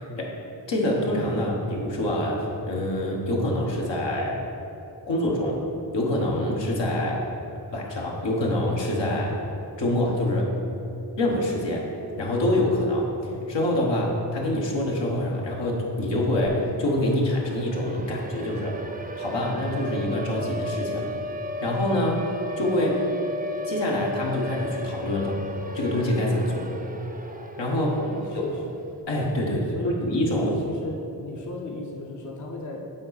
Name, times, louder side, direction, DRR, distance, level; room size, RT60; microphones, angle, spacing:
voice 1, 0.7-4.4 5.1-5.6 5.9-7.2 7.7-9.4 9.8-10.5 11.2-11.8 12.2-18.8 19.2-21.1 21.6-22.2 22.6-23.0 23.6-25.4 25.7-26.7 27.6-28.0 28.3-28.5 29.1-30.5, left 1 dB, 75° left, -2 dB, 1.2 m, -25 dB
Siren, 16.9-28.9, left 1 dB, 20° right, 0.6 m, -35 dB
voice 2, 28.0-28.6 29.4-30.0 30.4-32.9, left 2 dB, 40° left, 0 dB, 0.7 m, -36 dB
7.6 x 4.2 x 4.0 m, 3.0 s
cardioid pair, 45°, 44 cm